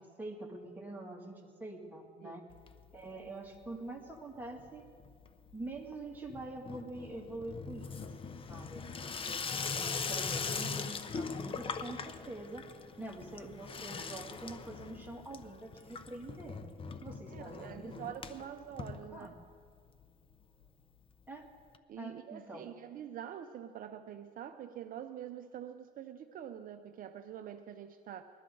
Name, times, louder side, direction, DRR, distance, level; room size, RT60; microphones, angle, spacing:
voice 1, 0.0-2.5 2.9-4.9 5.5-9.4 9.7-12.7 13.0-16.6 17.0-18.1 19.1-19.3 21.3-21.5 22.0-22.7, right 2 dB, 10° right, -1 dB, 2.3 m, -45 dB
Water tap faucet / Sink (filling or washing), 2.5-3.3 3.5-4.1 4.4-19.7 20.0-20.1 20.3-20.4 20.6-20.7 21.7-21.8, left 5 dB, 30° left, 0.7 m, -41 dB
voice 2, 17.3-19.3 21.9-28.2, right 10 dB, 55° right, 8 dB, 0.6 m, -45 dB
21.0 x 12.5 x 3.9 m, 2.1 s
cardioid pair, 110°, 17 cm